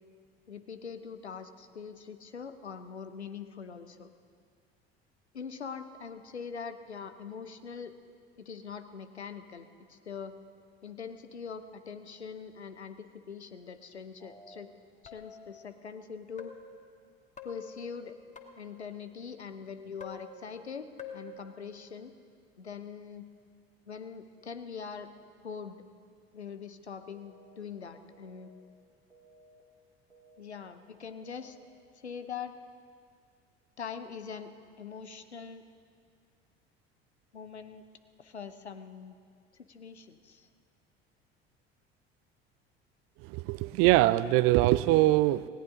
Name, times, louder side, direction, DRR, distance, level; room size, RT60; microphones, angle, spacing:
voice 1, 0.5-4.1 5.3-7.9 8.4-10.3 10.8-14.7 15.0-16.5 17.4-18.2 18.6-22.1 22.6-23.3 23.9-25.1 25.4-25.8 26.3-28.5 30.4-31.6 32.0-32.5 33.8-35.6 37.3-37.8 38.2-39.1 39.7-40.5, left 6 dB, 80° left, 10 dB, 0.8 m, -43 dB
sound 1, 14.2-14.6 15.0-15.6 16.4-16.8 17.4-18.8 20.0-20.7 21.0-21.4, left 6 dB, 20° left, 1.5 m, -47 dB
sound 2, 27.1-27.6 28.1-28.6 29.1-29.6 30.1-30.6 31.1-31.6, right 2 dB, 90° right, 1.7 m, -59 dB
voice 2, 43.2-45.5, right 17 dB, 45° right, 17 dB, 0.5 m, -23 dB
19.0 x 17.5 x 3.8 m, 2.1 s
figure-of-eight pair, 65°, 32 cm